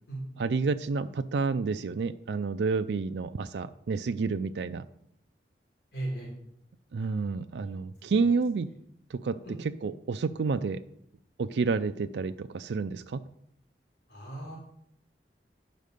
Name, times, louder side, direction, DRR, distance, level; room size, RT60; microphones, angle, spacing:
voice 1, 0.4-4.8 6.9-8.7 9.1-10.8 11.4-13.2, right 4 dB, 80° right, 10 dB, 0.4 m, -29 dB
voice 2, 5.9-6.3 7.0-7.7 9.4-9.6 14.1-14.6, right 1 dB, 80° left, -3 dB, 3.4 m, -38 dB
10.0 x 5.3 x 6.5 m, 0.74 s
head